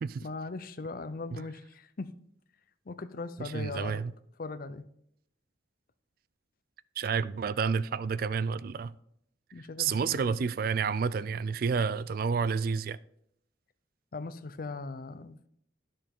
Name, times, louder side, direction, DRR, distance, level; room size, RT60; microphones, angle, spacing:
voice 1, 0.2-2.1 2.9-4.0 4.4-4.9 9.5-10.4 14.1-15.5, left 3 dB, 50° left, 0.6 m, -39 dB
voice 2, 3.4-4.1 7.0-8.9 9.8-13.0, right 5 dB, 50° right, 0.3 m, -30 dB
10.5 x 6.7 x 3.6 m
head